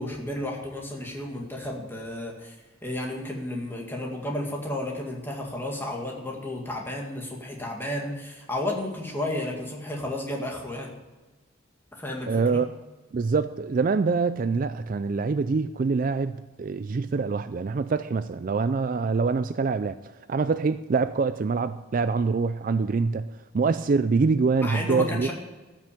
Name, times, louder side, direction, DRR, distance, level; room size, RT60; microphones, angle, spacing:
voice 1, 0.0-2.6 2.8-10.9 11.9-12.6 24.6-25.3, left 1 dB, 10° left, -1 dB, 2.0 m, -32 dB
voice 2, 12.3-12.7 13.1-19.9 20.3-23.3 23.5-25.3, right 4 dB, 40° right, 12 dB, 0.3 m, -25 dB
13.5 x 6.1 x 8.5 m, 1.2 s
head